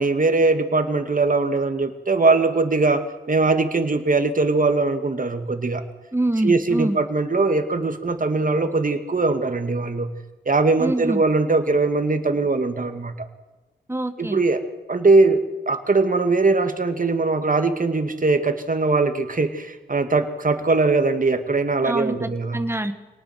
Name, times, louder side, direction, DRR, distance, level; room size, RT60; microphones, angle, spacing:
voice 1, 0.0-5.8 6.4-10.1 10.5-13.3 14.2-14.6 14.9-22.6, right 3 dB, 45° right, 7 dB, 2.3 m, -21 dB
voice 2, 6.1-7.0 10.8-11.2 13.9-14.4 21.8-22.9, right 1 dB, 15° right, 9 dB, 1.9 m, -25 dB
25.5 x 19.0 x 6.0 m, 1.2 s
wide cardioid pair, 70°, 19 cm